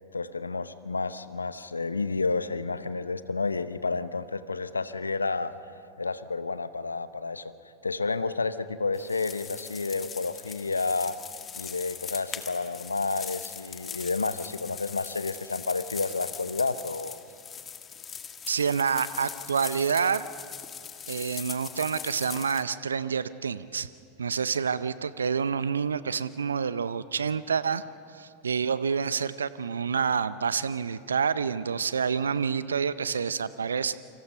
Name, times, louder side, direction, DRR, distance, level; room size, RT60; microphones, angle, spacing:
voice 1, 0.1-5.5 6.0-7.5 7.8-11.2 11.5-17.2, left 3 dB, 85° left, 14 dB, 0.8 m, -30 dB
sound 1, 8.9-22.6, left 7 dB, 25° left, 1.8 m, -41 dB
voice 2, 18.5-20.2 21.1-23.9 24.2-27.8 28.1-33.9, right 6 dB, 75° right, 16 dB, 0.6 m, -28 dB
29.0 x 26.0 x 5.6 m, 2.7 s
figure-of-eight pair, 85°, 0 cm